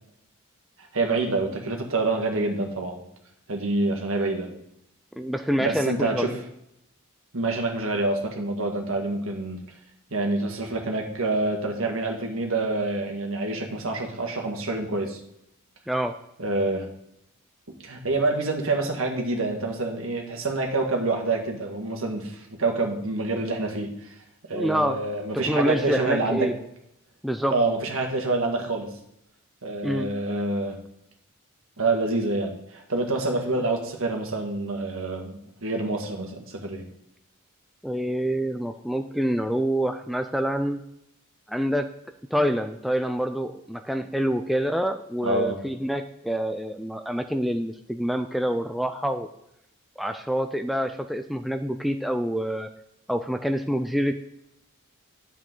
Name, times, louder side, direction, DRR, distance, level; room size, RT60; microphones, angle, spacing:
voice 1, 0.9-3.0 3.5-4.5 5.6-6.3 7.3-9.6 10.1-15.2 16.4-16.9 17.8-24.1 24.4-26.5 27.5-28.9 29.6-30.8 31.8-36.9 45.2-45.6, right 2 dB, 65° right, 2 dB, 1.7 m, -27 dB
voice 2, 5.1-6.4 15.9-16.1 24.5-25.0 25.3-26.6 27.2-27.6 29.8-30.1 37.8-40.8 41.5-41.9 42.3-49.3 50.0-52.7 53.1-54.1, equal, ahead, 6 dB, 0.3 m, -26 dB
10.5 x 7.3 x 3.8 m, 0.79 s
head